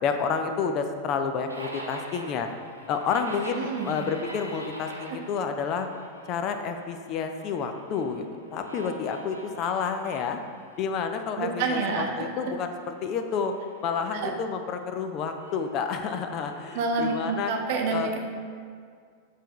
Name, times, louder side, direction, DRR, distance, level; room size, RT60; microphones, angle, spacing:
voice 1, 0.0-2.5 2.9-5.9 6.3-10.4 10.8-13.5 13.8-17.5 17.9-18.1, left 6 dB, 35° left, 6 dB, 0.4 m, -29 dB
sound 1, 1.5-11.3 11.6-14.1 15.4-17.6, right 1 dB, 85° right, 0.8 m, -44 dB
voice 2, 3.6-4.0 5.1-5.2 11.4-12.3 14.2-14.3 16.7-18.2, right 4 dB, 50° right, 2 dB, 0.7 m, -28 dB
7.3 x 3.4 x 4.0 m, 2.1 s
figure-of-eight pair, 90°, 0 cm